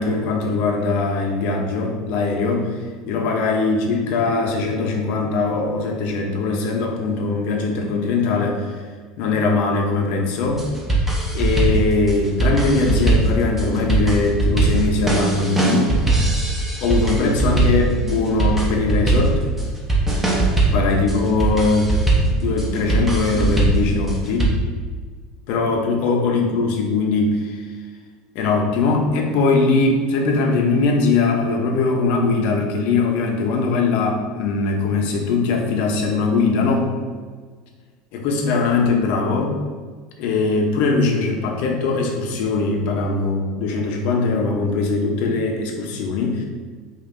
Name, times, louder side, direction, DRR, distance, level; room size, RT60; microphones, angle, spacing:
voice 1, 0.0-2.7 3.1-8.7 9.2-10.7 11.3-16.0 16.8-19.4 20.7-22.0 22.4-24.6 25.5-27.6 28.3-36.9 38.1-39.6 40.2-46.4, left 3 dB, 60° left, 2 dB, 0.7 m, -21 dB
sound 1, 10.5-24.5, right 2 dB, 10° right, 0.7 m, -20 dB
5.2 x 2.6 x 2.6 m, 1.6 s
supercardioid pair, 135°, 3 cm